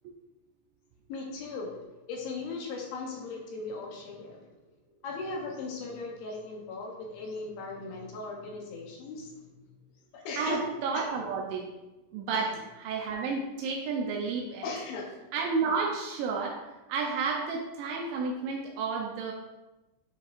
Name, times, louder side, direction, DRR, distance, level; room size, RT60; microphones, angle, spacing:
voice 1, 1.1-1.8 2.1-4.5 5.0-9.5 10.1-10.6 10.9-11.3 12.3-12.6 14.6-15.1, left 3 dB, 75° left, 0 dB, 2.3 m, -38 dB
voice 2, 10.4-11.6 12.1-12.5 12.8-14.6 15.3-16.6 16.9-19.3, right 5 dB, 80° right, -1 dB, 3.0 m, -31 dB
10.0 x 5.2 x 2.6 m, 1.1 s
omnidirectional pair, 5.4 m